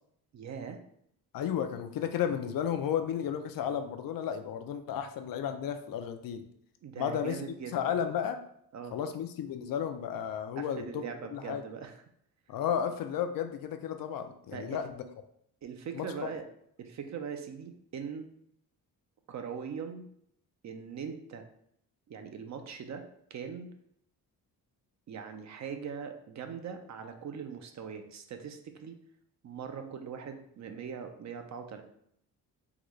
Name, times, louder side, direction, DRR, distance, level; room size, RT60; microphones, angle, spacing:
voice 1, 0.3-0.8 6.8-7.9 8.7-9.0 10.6-11.9 14.5-14.8 15.6-16.4 16.8-18.3 19.3-20.1 20.6-21.5 22.1-23.0 23.3-23.7 25.1-29.0 29.4-31.8, right 6 dB, 50° right, 6 dB, 0.5 m, -41 dB
voice 2, 1.3-6.4 7.0-8.4 8.9-11.0 11.3-11.6 12.5-15.0 15.9-16.1, left 8 dB, 65° left, 7 dB, 0.5 m, -33 dB
3.8 x 2.2 x 3.1 m, 0.70 s
cardioid pair, 95°, 38 cm